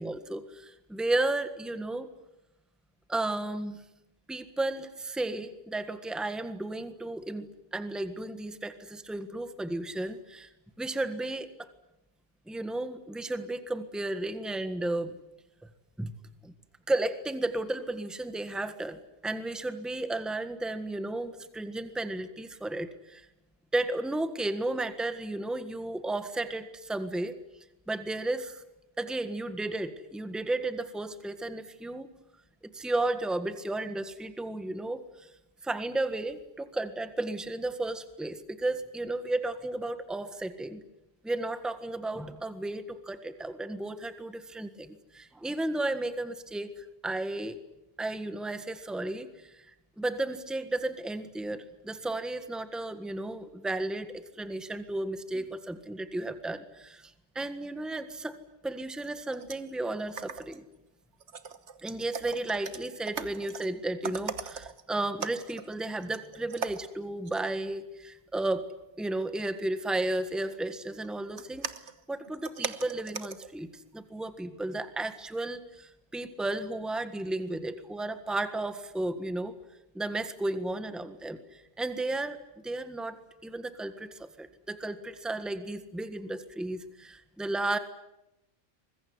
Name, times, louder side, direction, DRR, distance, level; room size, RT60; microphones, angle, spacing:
voice 1, 0.0-2.1 3.1-3.8 4.3-10.5 10.8-11.7 12.5-15.2 16.0-16.1 16.4-16.5 16.9-23.3 23.7-27.4 27.9-28.6 29.0-32.1 32.6-35.3 35.6-40.8 41.2-47.6 48.0-58.4 58.6-60.6 61.8-68.7 69.0-71.7 72.1-79.5 79.9-82.4 82.6-83.2 83.4-87.8, right 2 dB, ahead, 9 dB, 1.5 m, -33 dB
sound 1, 59.0-59.7 60.0-60.7 61.1-63.7 64.0-64.8 65.2-65.8 66.0-67.0 67.3-67.5 70.4-70.5 71.0-73.6 73.9-74.0, right 6 dB, 60° right, 1.4 m, -40 dB
24.0 x 22.0 x 9.7 m, 0.91 s
omnidirectional pair, 1.3 m